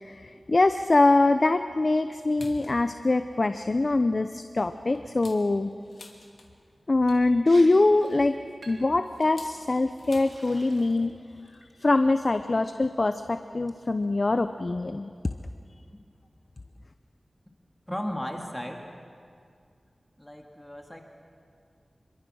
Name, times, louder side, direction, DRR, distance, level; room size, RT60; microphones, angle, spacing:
voice 1, 0.0-5.7 6.9-8.3 8.7-11.1 11.6-15.1, left 2 dB, 45° left, 9 dB, 0.7 m, -23 dB
sound 1, 2.2-2.8 3.3-3.4 3.8-4.0 4.5-6.8 7.9-10.5 10.8-10.9 11.2-11.5 12.4-12.5 13.4-13.5 14.4-14.5 14.9-15.0 15.1-15.3, left 3 dB, 80° left, 2.7 m, -52 dB
Liquid, 7.1-7.2 7.5-7.7 8.0-8.2 8.6-9.0 9.6-9.8 10.2-11.1 11.5-11.9, right 2 dB, 85° right, 2.7 m, -50 dB
voice 2, 17.9-18.8 20.2-21.0, equal, 10° left, 2 dB, 2.1 m, -35 dB
27.0 x 22.5 x 6.3 m, 2.3 s
wide cardioid pair, 70°, 0 cm